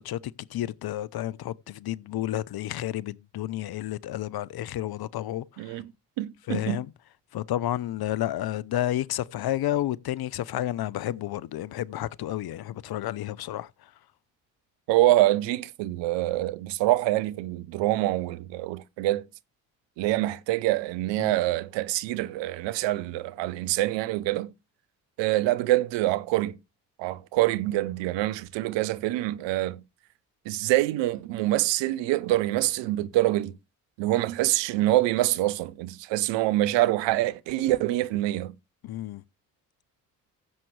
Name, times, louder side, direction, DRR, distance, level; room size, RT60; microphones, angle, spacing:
voice 1, 0.0-5.8 6.5-6.9 7.3-13.7 21.2-21.3 38.8-39.2, left 13 dB, 55° left, 0.8 m, -31 dB
voice 2, 5.6-5.9 6.2-6.8 14.9-19.2 20.0-24.5 25.2-26.5 27.0-29.8 30.5-33.5 34.0-38.5, right 16 dB, 75° right, 0.8 m, -25 dB
15.5 x 7.3 x 3.3 m
hypercardioid pair, 45°, 44 cm